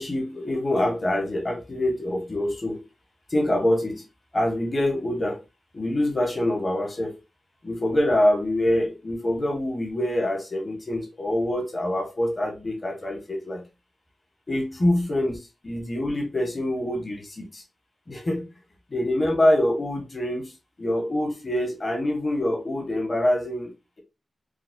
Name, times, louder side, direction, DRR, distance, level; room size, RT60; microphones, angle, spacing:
voice 1, 0.0-2.8 3.3-4.0 4.3-5.4 5.7-7.2 7.6-13.7 14.5-17.6 18.1-18.5 18.9-20.5 20.8-24.0, left 1 dB, 25° left, 0.9 m, -25 dB
4.6 x 2.0 x 2.2 m
wide cardioid pair, 155°, 0 cm